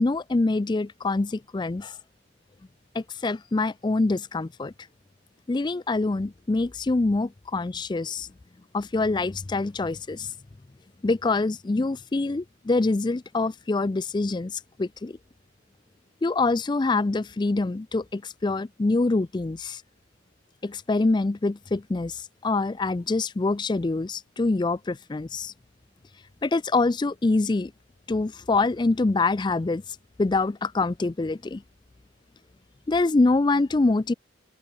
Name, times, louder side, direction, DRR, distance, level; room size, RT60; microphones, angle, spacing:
voice 1, 0.0-2.0 2.9-4.7 5.5-8.3 8.7-10.3 11.0-15.2 16.2-19.8 20.6-25.5 26.4-27.7 28.1-29.8 30.2-31.6 32.9-34.1, left 3 dB, 25° left, 0.4 m, -25 dB
open air
head